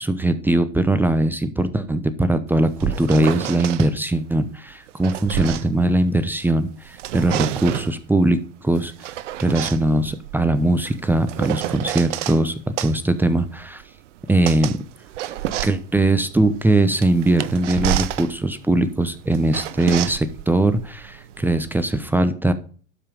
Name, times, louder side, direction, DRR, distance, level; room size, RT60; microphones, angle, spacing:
voice 1, 0.0-8.9 9.4-13.8 14.3-14.8 15.6-22.5, right 2 dB, 5° right, 11 dB, 0.8 m, -20 dB
sound 1, 2.5-3.9 4.7-6.5 6.8-8.0 8.7-12.4 12.8-21.9, right 12 dB, 70° right, 0.9 m, -30 dB
12.0 x 5.6 x 5.3 m, 0.41 s
hypercardioid pair, 115°, 38 cm